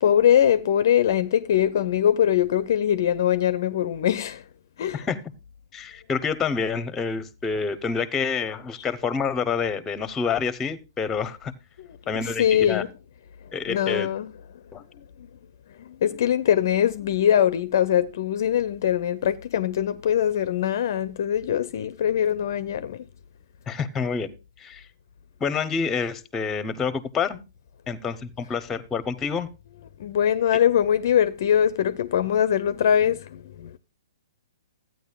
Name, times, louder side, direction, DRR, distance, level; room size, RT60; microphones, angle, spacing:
voice 1, 0.0-4.4 4.8-5.0 11.8-11.9 12.2-12.9 13.7-14.3 15.9-23.0 30.0-33.7, left 9 dB, 50° left, 0.5 m, -22 dB
voice 2, 5.7-11.5 12.1-12.8 13.5-14.1 14.7-14.8 23.7-24.3 24.6-24.8 25.4-27.4 27.9-29.5, left 5 dB, 15° left, 0.8 m, -27 dB
14.5 x 9.3 x 2.3 m
figure-of-eight pair, 120°, 2 cm